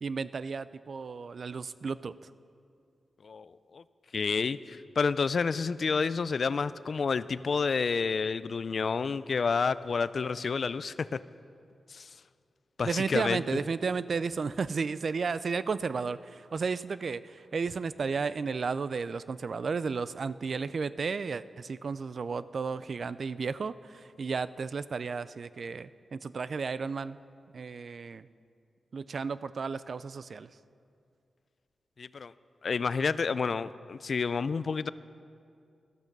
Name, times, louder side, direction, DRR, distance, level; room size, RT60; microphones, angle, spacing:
voice 1, 0.0-2.1 12.9-27.2 27.5-28.3 28.9-30.5, right 5 dB, 50° right, 16 dB, 0.3 m, -33 dB
voice 2, 3.2-3.8 4.1-11.2 11.9-12.1 12.8-13.4 32.0-32.3 32.6-34.9, left 5 dB, 50° left, 16 dB, 0.3 m, -29 dB
13.5 x 12.5 x 5.3 m, 2.4 s
wide cardioid pair, 145°, 0 cm